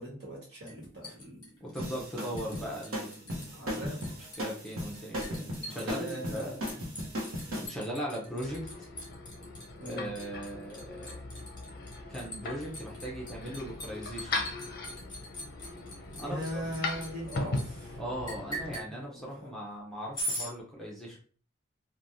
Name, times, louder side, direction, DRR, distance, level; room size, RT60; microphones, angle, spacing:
voice 1, 0.0-1.4 3.5-4.0 5.6-6.4 9.8-10.1 16.1-18.0 18.9-19.6, equal, 55° right, -3 dB, 1.3 m, -40 dB
Liquid, 0.7-2.6 2.8-3.5 3.7-17.6 18.3-18.9 20.1-20.5, equal, 20° left, 1.3 m, -41 dB
voice 2, 1.6-3.5 4.4-6.8 7.6-8.9 9.8-11.1 12.1-14.5 16.1-16.4 18.0-21.2, equal, ahead, -4 dB, 0.6 m, -39 dB
sound 1, 1.8-7.7, equal, 85° right, 0.9 m, -37 dB
sound 2, 8.2-18.8, left 2 dB, 50° left, 0.6 m, -39 dB
3.2 x 2.3 x 2.6 m, 0.42 s
head